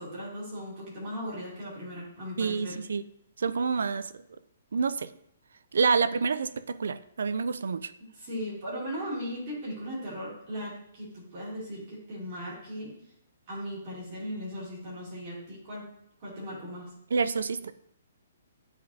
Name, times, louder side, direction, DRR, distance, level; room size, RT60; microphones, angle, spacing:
voice 1, 0.0-2.8 8.0-12.9 13.5-15.9 16.2-16.9, equal, 30° right, -6 dB, 2.7 m, -38 dB
voice 2, 2.4-3.0 3.4-4.1 4.7-5.1 5.7-7.9 17.1-17.7, right 5 dB, 80° right, 14 dB, 0.4 m, -28 dB
9.7 x 4.2 x 2.7 m, 0.74 s
hypercardioid pair, 175°, 0 cm